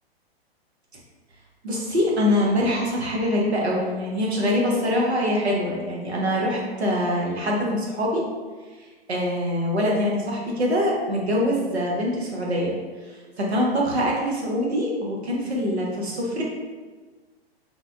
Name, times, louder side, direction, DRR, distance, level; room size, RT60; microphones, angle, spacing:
voice 1, 1.6-8.2 9.1-12.7 13.1-16.4, left 1 dB, 85° right, -2 dB, 0.9 m, -24 dB
3.2 x 2.2 x 2.5 m, 1.4 s
figure-of-eight pair, 115°, 31 cm